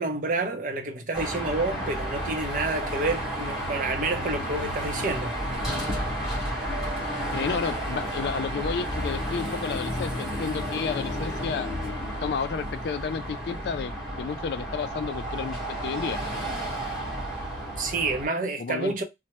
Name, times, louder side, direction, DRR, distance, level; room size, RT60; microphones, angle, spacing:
voice 1, 0.0-5.3 17.8-19.0, right 3 dB, 45° right, 0.6 m, -29 dB
Car passing by / Traffic noise roadway noise / Engine, 1.1-18.3, equal, 5° right, 1.2 m, -31 dB
voice 2, 7.3-11.7 12.2-16.2 18.6-19.0, left 6 dB, 60° left, 0.3 m, -31 dB
3.1 x 2.1 x 2.8 m
head